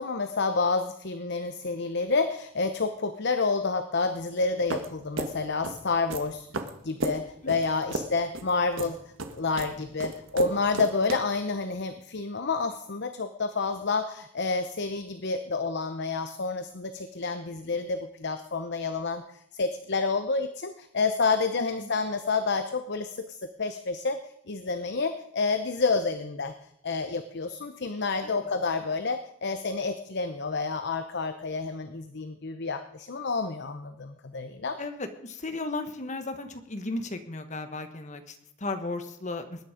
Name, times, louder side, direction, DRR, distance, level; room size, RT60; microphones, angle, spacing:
voice 1, 0.0-6.5 6.8-9.0 9.3-19.2 19.5-24.2 24.5-26.5 26.8-34.8, left 4 dB, 55° left, 9 dB, 0.8 m, -29 dB
sound 1, 4.7-11.1, right 2 dB, 70° right, 1.5 m, -34 dB
voice 2, 21.6-21.9 28.2-28.5 34.8-39.6, left 2 dB, 35° left, 8 dB, 1.4 m, -35 dB
20.5 x 9.6 x 5.1 m, 0.72 s
head